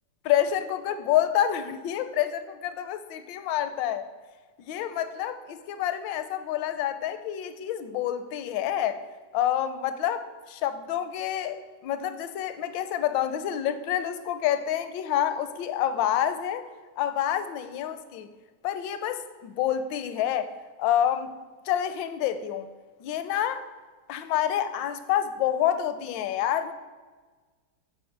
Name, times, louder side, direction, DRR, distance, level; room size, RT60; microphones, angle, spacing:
voice 1, 0.2-4.1 4.7-9.0 9.3-16.6 17.0-18.3 18.6-20.5 20.8-21.4 21.7-22.7 23.0-23.7 24.1-26.7, left 10 dB, 80° left, 12 dB, 1.3 m, -28 dB
7.2 x 4.7 x 5.8 m, 1.4 s
omnidirectional pair, 2.0 m